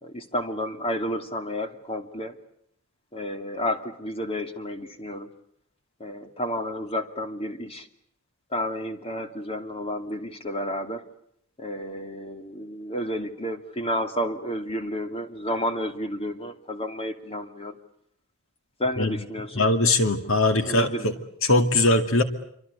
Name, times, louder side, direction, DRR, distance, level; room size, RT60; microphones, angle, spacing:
voice 1, 0.0-2.4 3.1-5.3 6.0-7.9 8.5-11.0 11.6-17.7 18.8-19.7 20.6-21.1, equal, 25° left, 7 dB, 2.6 m, -31 dB
voice 2, 19.5-21.1 21.4-22.2, left 2 dB, 60° left, 8 dB, 2.3 m, -21 dB
27.5 x 25.0 x 8.3 m, 0.70 s
head